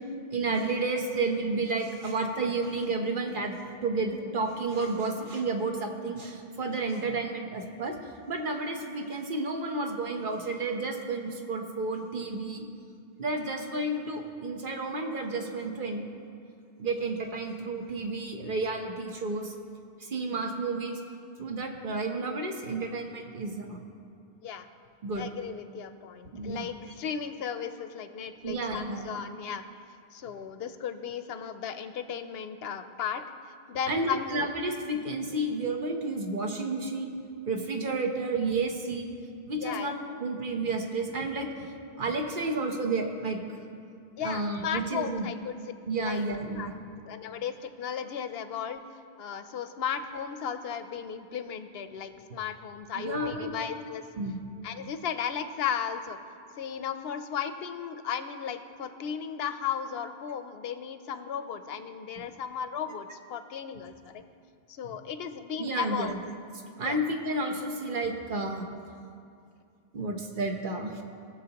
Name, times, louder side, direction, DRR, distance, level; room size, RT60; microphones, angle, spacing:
voice 1, 0.3-7.9 8.3-12.6 13.2-16.0 16.8-19.5 20.0-21.0 21.4-23.8 25.0-25.3 26.3-26.7 28.4-29.1 33.9-37.1 37.5-39.1 39.5-41.7 42.0-43.4 44.2-45.3 45.9-46.8 52.9-53.5 54.2-54.4 65.6-66.2 66.8-68.6 69.9-71.0, right 3 dB, 55° right, 3 dB, 1.0 m, -31 dB
voice 2, 25.2-29.6 30.1-33.3 33.7-34.5 39.6-39.9 44.2-45.6 46.0-46.2 46.6-46.7 47.1-48.8 49.2-54.0 54.6-56.2 56.6-64.2 64.7-66.2 66.8-67.0, left 7 dB, 70° left, 10 dB, 0.8 m, -35 dB
18.5 x 6.7 x 2.9 m, 2.4 s
omnidirectional pair, 1.1 m